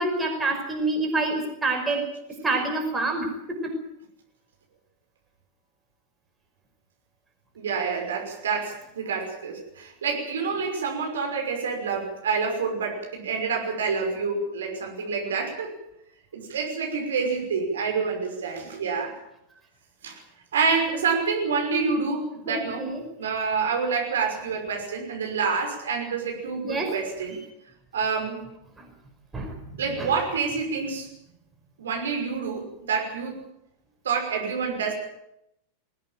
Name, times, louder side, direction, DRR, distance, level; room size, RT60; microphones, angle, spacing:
voice 1, 0.0-2.1 2.4-3.7 22.5-23.0 26.6-27.0 28.8-28.9 29.3-30.1, right 2 dB, 10° right, 3 dB, 5.4 m, -27 dB
voice 2, 7.6-15.7 16.3-19.2 20.0-20.1 20.5-22.9 23.2-27.4 27.9-28.4 29.8-31.1 31.8-33.4 34.0-34.9, right 5 dB, 65° right, 2 dB, 5.9 m, -27 dB
21.5 x 17.0 x 9.1 m, 0.81 s
figure-of-eight pair, 90°, 0 cm